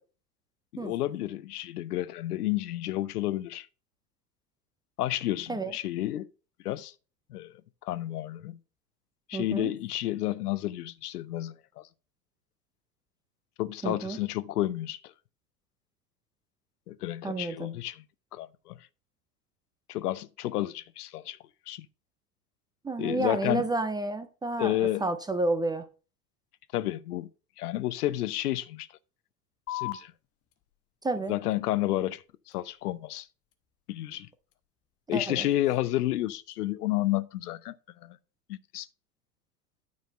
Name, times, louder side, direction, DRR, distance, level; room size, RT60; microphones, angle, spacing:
voice 1, 0.7-3.7 5.0-6.3 6.6-6.9 7.3-7.5 7.8-8.6 9.3-11.8 13.6-15.1 16.9-18.0 18.3-18.7 19.9-21.4 21.7-21.9 23.0-23.6 24.6-25.1 26.7-27.3 27.6-28.9 29.7-30.1 31.3-32.2 32.5-33.3 33.9-34.3 35.1-37.7 38.0-38.2 38.5-38.9, left 15 dB, 70° left, 0.7 m, -31 dB
voice 2, 9.3-9.7 13.8-14.2 17.2-17.7 22.8-25.8 31.0-31.3 35.1-35.5, right 2 dB, 10° right, 0.4 m, -30 dB
sound 1, 29.7-36.7, left 15 dB, 30° left, 0.9 m, -46 dB
9.5 x 4.0 x 5.2 m
hypercardioid pair, 90°, 48 cm